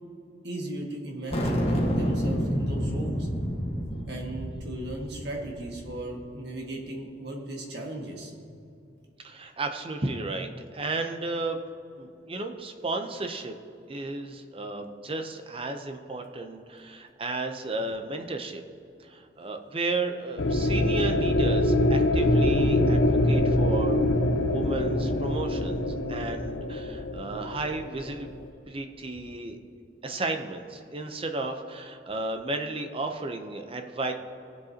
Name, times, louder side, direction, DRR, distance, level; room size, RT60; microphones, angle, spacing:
voice 1, 0.4-3.3 4.1-8.3, right 1 dB, 60° right, 0 dB, 1.8 m, -37 dB
sound 1, 1.3-6.0, equal, 35° left, 1.4 m, -29 dB
voice 2, 9.2-10.5 10.7-11.6 12.0-13.5 13.9-18.6 19.0-28.3 28.7-29.6 30.0-34.1, right 2 dB, 30° right, 5 dB, 0.7 m, -33 dB
sound 2, 20.4-28.5, left 1 dB, 80° left, 0.8 m, -24 dB
18.0 x 7.9 x 2.9 m, 2.6 s
head